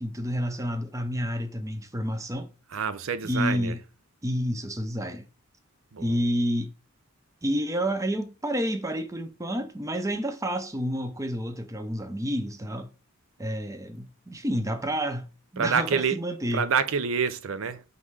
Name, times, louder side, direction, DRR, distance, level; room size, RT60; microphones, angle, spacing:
voice 1, 0.0-2.5 3.2-3.8 4.2-5.3 6.0-6.7 7.4-12.9 13.4-16.7, equal, 15° right, 0.7 m, -29 dB
voice 2, 2.7-3.7 5.9-6.2 15.6-16.2 16.5-17.8, right 6 dB, 70° right, 0.5 m, -27 dB
5.4 x 3.8 x 4.8 m
head